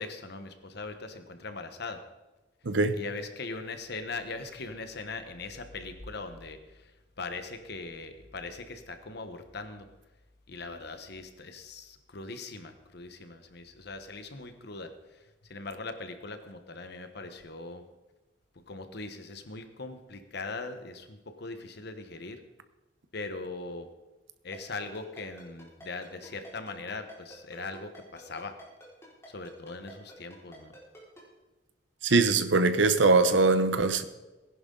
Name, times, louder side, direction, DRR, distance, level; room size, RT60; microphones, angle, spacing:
voice 1, 0.0-2.0 2.9-9.9 10.5-17.8 18.7-22.4 23.1-23.9 24.4-28.6 29.3-30.7, left 3 dB, 60° left, 1.1 m, -40 dB
voice 2, 2.6-3.0 32.0-34.0, right 3 dB, 80° right, 1.0 m, -22 dB
Ringtone, 24.5-31.2, equal, 15° left, 4.8 m, -49 dB
19.0 x 11.0 x 3.9 m
head